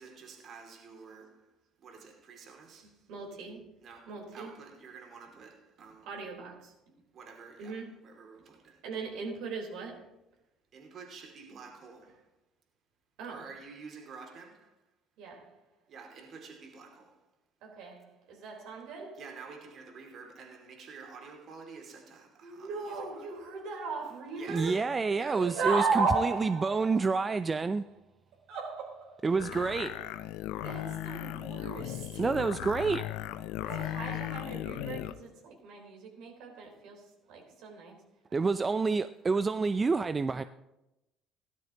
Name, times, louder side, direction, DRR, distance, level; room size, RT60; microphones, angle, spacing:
voice 1, 0.0-1.4 1.8-2.9 3.8-6.1 7.1-8.8 10.7-12.1 13.3-14.7 15.9-17.1 19.2-23.3 24.4-24.8 25.1-25.4 33.7-34.3, right 5 dB, 50° right, 2.6 m, -49 dB
voice 2, 3.1-3.6 4.1-4.5 6.0-6.7 7.6-7.9 8.8-10.0 13.2-13.5 15.2-15.5 17.6-19.4 22.4-25.0 25.3-27.2 27.7-27.8 28.5-29.9 30.6-32.5 33.6-37.0 37.3-38.0 38.5-38.6, right 4 dB, 70° right, 4.0 m, -37 dB
voice 3, 24.5-27.8 29.2-30.0 32.2-33.0 38.3-40.4, right 4 dB, 30° right, 0.4 m, -28 dB
sound 1, 29.4-35.2, left 14 dB, 70° left, 0.5 m, -37 dB
17.0 x 12.0 x 3.0 m
hypercardioid pair, 60°, 0 cm